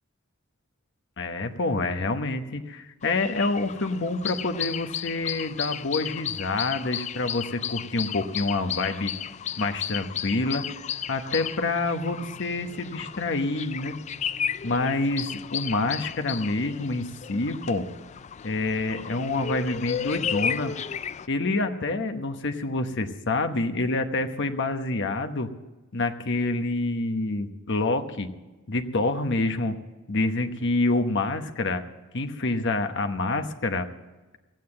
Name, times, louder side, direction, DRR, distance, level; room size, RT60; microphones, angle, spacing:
voice 1, 1.2-9.1 9.6-10.6 11.1-13.9 14.6-17.9 18.4-20.7 21.3-25.5 25.9-28.3 28.7-29.7 30.1-31.8 32.1-33.9, left 2 dB, 60° left, 7 dB, 1.0 m, -27 dB
sound 1, 3.0-21.3, left 8 dB, 35° left, 0.3 m, -34 dB
15.5 x 9.2 x 7.7 m, 1.1 s
head